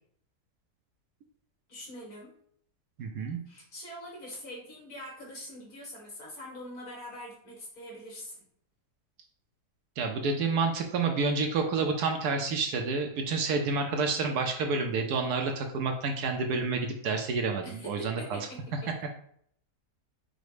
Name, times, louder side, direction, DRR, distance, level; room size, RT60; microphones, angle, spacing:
voice 1, 1.7-2.3 3.5-8.4 17.6-18.9, equal, 60° left, -3 dB, 2.2 m, -43 dB
voice 2, 3.0-3.4 10.0-18.4, right 4 dB, 70° right, 4 dB, 1.1 m, -29 dB
5.1 x 2.2 x 4.8 m, 0.65 s
omnidirectional pair, 1.8 m